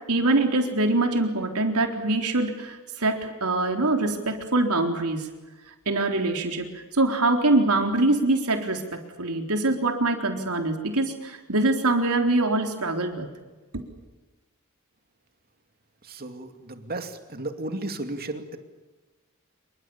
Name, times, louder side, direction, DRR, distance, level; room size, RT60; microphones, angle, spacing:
voice 1, 0.1-5.3 5.9-13.3 13.7-13.9, right 2 dB, 85° right, 3 dB, 3.9 m, -24 dB
voice 2, 16.0-18.6, right 2 dB, 45° right, 6 dB, 2.5 m, -34 dB
27.5 x 24.0 x 7.3 m, 1.2 s
head